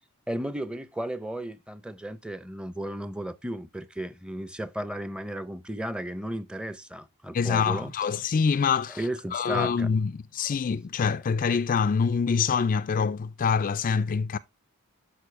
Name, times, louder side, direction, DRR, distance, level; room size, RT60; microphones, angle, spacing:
voice 1, 0.3-7.9 8.9-10.0 10.5-10.6, right 1 dB, 5° right, 0.6 m, -34 dB
voice 2, 7.3-9.0 9.3-14.4, left 6 dB, 40° left, 0.3 m, -25 dB
11.5 x 4.5 x 3.2 m
head